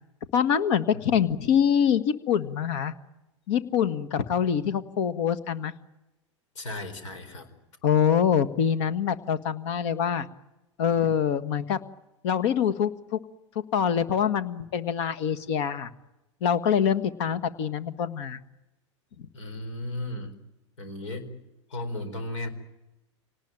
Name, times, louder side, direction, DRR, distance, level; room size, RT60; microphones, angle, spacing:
voice 1, 0.3-2.9 3.5-5.7 7.8-10.3 10.8-11.8 12.2-13.2 13.7-15.9 16.4-18.4, left 8 dB, 65° left, 11 dB, 1.6 m, -25 dB
voice 2, 6.5-7.5 19.3-20.4 20.8-21.3 21.7-22.5, left 1 dB, 80° left, 11 dB, 4.5 m, -35 dB
26.0 x 19.0 x 9.0 m, 1.0 s
hypercardioid pair, 105°, 16 cm